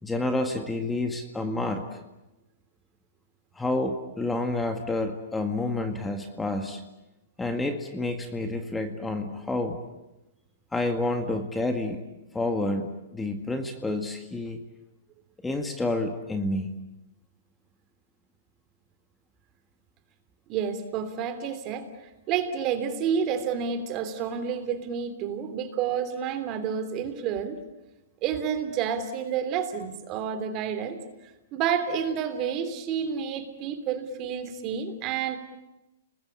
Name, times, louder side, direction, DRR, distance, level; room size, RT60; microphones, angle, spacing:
voice 1, 0.0-2.0 3.5-6.8 7.4-9.8 10.7-12.0 12.3-14.6 15.4-16.7, left 2 dB, 10° left, 5 dB, 2.0 m, -29 dB
voice 2, 20.5-21.9 22.3-27.6 28.2-31.0 31.5-35.4, right 7 dB, 35° right, 9 dB, 3.2 m, -29 dB
30.0 x 20.5 x 8.5 m, 1.0 s
hypercardioid pair, 130°, 0 cm